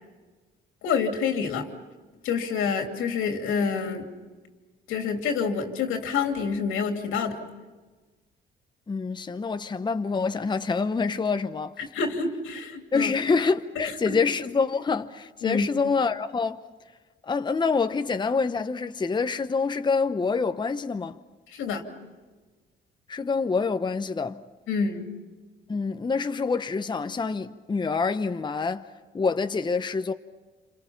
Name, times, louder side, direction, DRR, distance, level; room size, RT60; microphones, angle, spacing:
voice 1, 0.8-1.7 2.2-4.1 4.9-7.4 11.9-13.1 14.0-14.2 15.4-15.6 21.5-21.8 24.7-25.0, left 5 dB, 90° left, 2.8 m, -27 dB
voice 2, 8.9-11.7 12.9-16.7 17.2-21.2 23.1-24.4 25.7-28.9 29.1-30.1, left 4 dB, 20° left, 0.8 m, -26 dB
28.5 x 27.0 x 5.8 m
cardioid pair, 90°, 20 cm